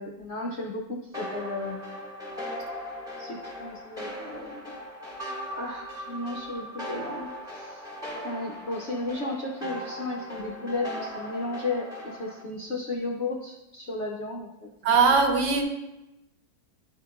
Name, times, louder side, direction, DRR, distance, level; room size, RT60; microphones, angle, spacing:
voice 1, 0.0-2.0 3.2-4.7 5.5-7.8 8.2-14.5, left 2 dB, 65° left, -1 dB, 0.7 m, -34 dB
sound 1, 1.1-12.4, equal, ahead, 1.6 m, -38 dB
voice 2, 14.8-15.6, right 4 dB, 65° right, 3 dB, 1.3 m, -20 dB
11.0 x 4.8 x 2.3 m, 0.97 s
omnidirectional pair, 2.0 m